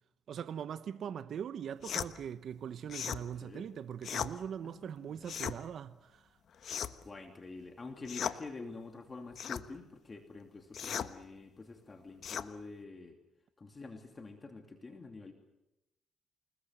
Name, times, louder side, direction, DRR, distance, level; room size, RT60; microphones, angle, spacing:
voice 1, 0.3-6.2, right 8 dB, 65° right, 0.9 m, -41 dB
sound 1, 1.8-2.1 2.9-3.2 4.0-4.3 5.2-5.6 6.6-7.1 8.0-8.4 9.3-9.6 10.7-11.1 12.2-12.5, left 8 dB, 60° left, 1.2 m, -37 dB
voice 2, 3.2-3.7 4.6-5.3 7.0-13.2 13.6-15.3, left 3 dB, 30° left, 2.8 m, -47 dB
28.5 x 20.5 x 8.0 m
cardioid pair, 90°, 0 cm